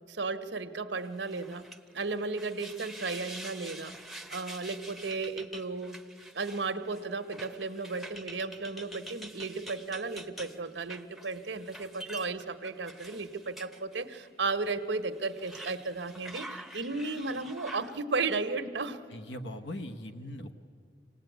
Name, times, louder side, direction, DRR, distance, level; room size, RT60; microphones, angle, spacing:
voice 1, 0.1-1.6 1.9-3.9 4.3-6.0 6.3-19.0, right 3 dB, 85° right, 7 dB, 1.2 m, -34 dB
sound 1, 1.1-14.3 14.6-14.7 15.2-18.0, right 1 dB, ahead, 0.7 m, -46 dB
voice 2, 19.1-20.5, left 1 dB, 80° left, 8 dB, 1.1 m, -40 dB
25.5 x 18.0 x 9.3 m, 2.2 s
head